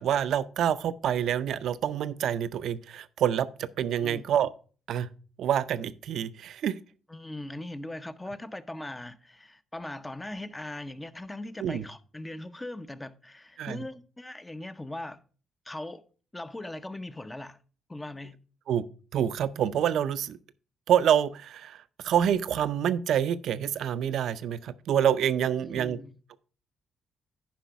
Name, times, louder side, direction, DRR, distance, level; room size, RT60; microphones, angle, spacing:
voice 1, 0.0-4.5 4.9-5.1 5.4-6.8 11.6-11.8 13.6-13.8 18.7-18.8 19.1-20.4 20.9-26.0, right 9 dB, 70° right, 0.5 m, -27 dB
voice 2, 7.1-15.2 15.6-16.0 16.3-17.6 17.9-18.4 25.6-26.2, left 1 dB, 15° left, 0.7 m, -40 dB
10.5 x 5.0 x 4.6 m
cardioid pair, 90°, 0 cm